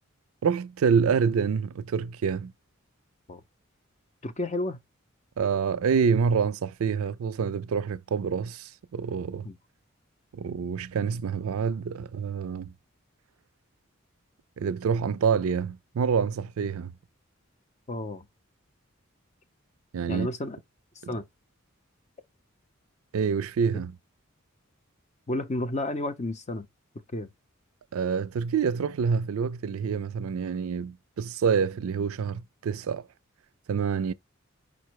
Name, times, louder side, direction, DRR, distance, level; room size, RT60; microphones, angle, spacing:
voice 1, 0.4-2.5 5.4-9.5 10.3-12.7 14.6-16.9 19.9-20.3 23.1-23.9 27.9-33.1 33.7-34.1, right 6 dB, 85° right, 0.4 m, -27 dB
voice 2, 4.2-4.8 9.4-9.6 17.9-18.2 20.1-20.6 21.1-21.2 25.3-26.7 27.1-27.3, left 2 dB, 35° left, 0.6 m, -31 dB
5.2 x 2.1 x 4.5 m
head